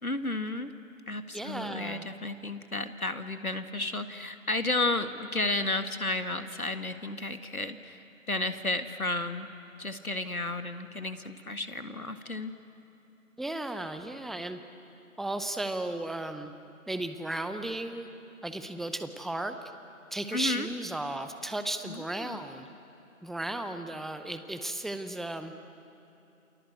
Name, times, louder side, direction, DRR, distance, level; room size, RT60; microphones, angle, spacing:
voice 1, 0.0-0.7 1.1-9.5 9.8-12.5 20.3-20.7 21.8-22.4, left 2 dB, 80° left, 9 dB, 1.9 m, -32 dB
voice 2, 1.3-2.1 13.4-14.6 15.2-16.5 16.9-18.1 18.4-19.6 20.1-22.7 23.2-25.5, right 1 dB, ahead, 9 dB, 0.6 m, -35 dB
28.5 x 24.5 x 8.0 m, 3.0 s
figure-of-eight pair, 175°, 42 cm